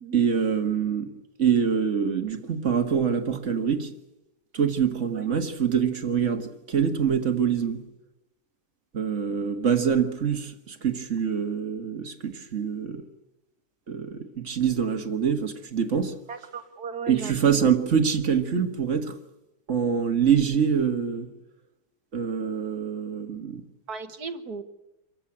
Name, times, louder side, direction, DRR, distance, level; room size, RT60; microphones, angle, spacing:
voice 1, 0.1-1.1 1.4-3.9 4.5-7.8 8.9-13.0 13.9-16.1 17.1-19.2 19.7-21.3 22.1-23.6, right 7 dB, 45° right, 1.9 m, -25 dB
voice 2, 16.3-17.6 23.9-24.6, right 5 dB, 60° right, 2.0 m, -36 dB
26.5 x 15.0 x 8.7 m
omnidirectional pair, 1.9 m